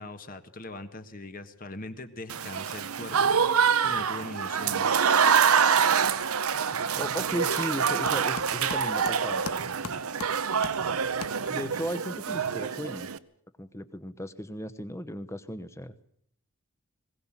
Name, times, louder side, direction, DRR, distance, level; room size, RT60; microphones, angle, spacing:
voice 1, 0.0-3.3 3.8-4.9, left 2 dB, 40° left, 9 dB, 1.4 m, -41 dB
Applause / Crowd, 2.3-13.2, right 7 dB, 85° right, 0.9 m, -26 dB
sound 1, 5.3-5.7 6.0-11.8, left 4 dB, 85° left, 1.6 m, -43 dB
voice 2, 7.0-9.4 11.5-13.1 13.6-15.9, equal, 15° left, 13 dB, 1.0 m, -36 dB
21.0 x 17.5 x 7.4 m, 0.65 s
head